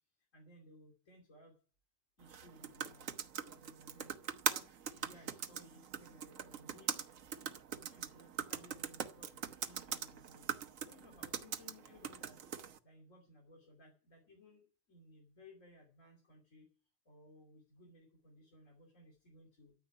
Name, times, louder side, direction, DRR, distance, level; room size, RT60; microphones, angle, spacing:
voice 1, 0.2-1.5 2.2-7.0 7.7-12.4 12.8-16.7 17.0-19.7, left 1 dB, 75° left, 0 dB, 3.4 m, -61 dB
sound 1, 2.2-12.8, right 8 dB, 85° right, 1.3 m, -42 dB
13.5 x 7.1 x 9.5 m, 0.40 s
omnidirectional pair, 1.3 m